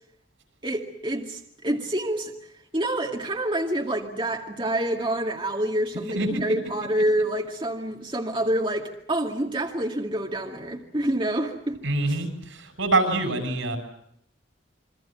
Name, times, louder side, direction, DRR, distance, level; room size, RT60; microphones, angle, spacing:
voice 1, 0.6-2.3 2.7-11.8, right 1 dB, 25° right, 1 dB, 2.2 m, -27 dB
voice 2, 6.1-6.4 11.8-13.8, right 2 dB, 90° right, 8 dB, 6.8 m, -25 dB
28.0 x 24.0 x 7.5 m, 0.71 s
head